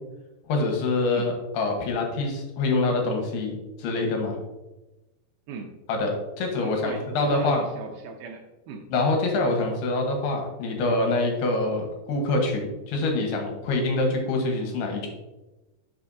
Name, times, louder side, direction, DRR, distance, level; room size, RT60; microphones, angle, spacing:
voice 1, 0.5-4.4 5.9-7.6 8.9-15.1, left 2 dB, 75° left, 2 dB, 3.2 m, -25 dB
voice 2, 6.6-8.9, right 4 dB, 75° right, 3 dB, 2.3 m, -36 dB
11.0 x 6.5 x 2.7 m, 1.1 s
omnidirectional pair, 4.9 m